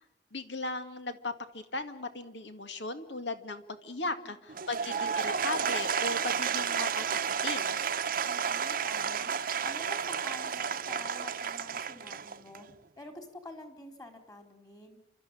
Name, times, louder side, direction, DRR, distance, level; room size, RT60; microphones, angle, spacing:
voice 1, 0.3-7.0 7.4-7.8, left 3 dB, 80° left, 9 dB, 2.0 m, -37 dB
voice 2, 4.0-4.3 8.3-9.3 9.6-12.7 13.0-15.0, left 1 dB, 20° left, 6 dB, 4.0 m, -48 dB
Applause / Crowd, 4.5-12.7, right 7 dB, 50° right, 0.8 m, -31 dB
28.5 x 13.5 x 10.0 m, 0.79 s
head